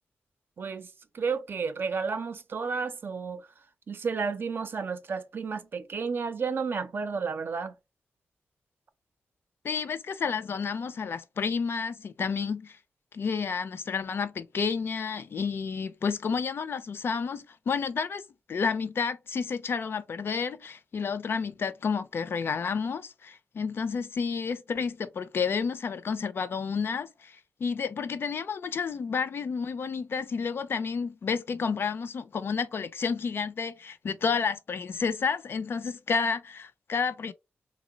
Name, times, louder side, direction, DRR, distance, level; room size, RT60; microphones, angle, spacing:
voice 1, 0.6-0.9 1.1-3.4 3.9-7.7, right 5 dB, 60° right, 0.5 m, -32 dB
voice 2, 9.6-12.8 13.1-18.2 18.5-37.3, left 5 dB, 70° left, 0.4 m, -30 dB
2.8 x 2.0 x 3.8 m
wide cardioid pair, 90°, 4 cm